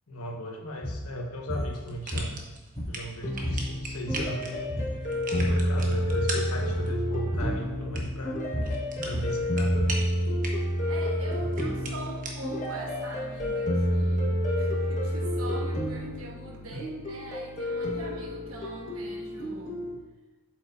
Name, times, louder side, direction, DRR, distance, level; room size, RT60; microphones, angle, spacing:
voice 1, 0.1-2.4 2.9-4.8 5.3-8.4 9.0-10.1 11.4-11.7 16.7-16.8, equal, 80° left, 1 dB, 1.3 m, -37 dB
sound 1, 0.8-1.0 1.5-1.7 2.1-3.1 3.4-3.7 3.9-4.4 4.7-5.6 5.9-6.2 6.6-6.8 7.3-7.6 7.9-10.0, equal, 20° left, 2.5 m, -33 dB
sound 2, 1.7-13.6, right 2 dB, 40° right, 1.1 m, -41 dB
sound 3, 3.2-19.9, equal, 35° left, 1.4 m, -29 dB
voice 2, 10.8-19.8, right 2 dB, 65° right, 1 dB, 1.3 m, -43 dB
8.3 x 7.6 x 2.6 m, 1.2 s
head